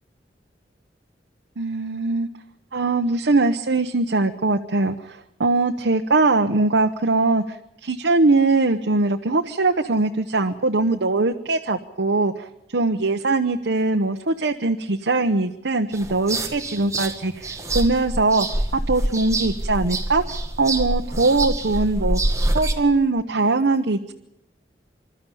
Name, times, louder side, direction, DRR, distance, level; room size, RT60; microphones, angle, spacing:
voice 1, 1.6-2.3 2.7-22.2 22.5-24.1, right 3 dB, 85° right, 4 dB, 1.0 m, -21 dB
sound 1, 15.9-22.7, right 1 dB, 20° right, 1.9 m, -26 dB
26.5 x 13.0 x 10.0 m, 0.80 s
head